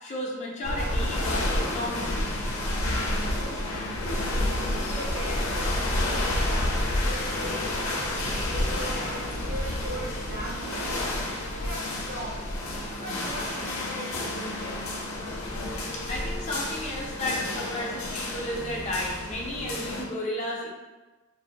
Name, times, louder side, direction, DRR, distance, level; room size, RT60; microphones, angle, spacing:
voice 1, 0.0-2.4 15.9-20.7, left 1 dB, 35° left, -3 dB, 0.4 m, -33 dB
sound 1, 0.6-20.0, left 1 dB, 90° left, 0.5 m, -30 dB
sound 2, 0.9-10.8, equal, 80° right, 0.9 m, -43 dB
voice 2, 3.2-3.7 4.2-7.9 8.5-10.9 11.5-12.4 13.0-14.7, right 1 dB, 45° right, -4 dB, 0.5 m, -39 dB
2.5 x 2.0 x 2.7 m, 1.2 s
head